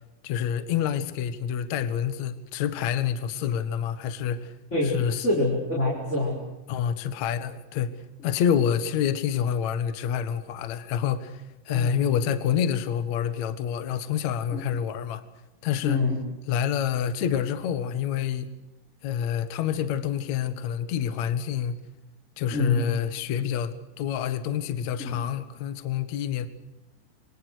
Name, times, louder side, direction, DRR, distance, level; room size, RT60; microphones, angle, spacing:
voice 1, 0.2-4.5 4.9-5.3 6.7-8.0 8.2-15.2 15.6-16.0 16.5-18.5 19.0-21.8 22.4-26.5, left 9 dB, 90° left, 1.5 m, -27 dB
voice 2, 4.7-6.4 11.7-12.0 14.5-14.7 15.8-16.2 22.5-22.9 25.0-25.1, left 2 dB, 15° left, 4.6 m, -26 dB
28.5 x 25.0 x 6.5 m
omnidirectional pair, 6.0 m